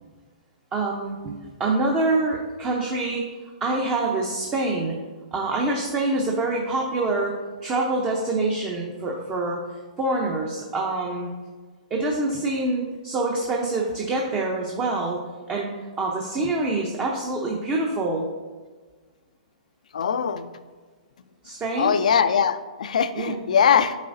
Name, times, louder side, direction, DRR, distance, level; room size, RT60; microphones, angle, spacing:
voice 1, 0.7-3.3 3.6-5.0 5.3-7.3 7.6-9.6 10.0-11.3 11.9-15.2 15.5-15.7 16.0-18.3 21.4-22.0 23.2-23.8, right 2 dB, 20° right, -1 dB, 0.7 m, -26 dB
voice 2, 19.9-20.5 21.8-24.0, left 7 dB, 70° left, 12 dB, 0.4 m, -21 dB
8.2 x 4.7 x 2.6 m, 1.4 s
hypercardioid pair, 125°, 4 cm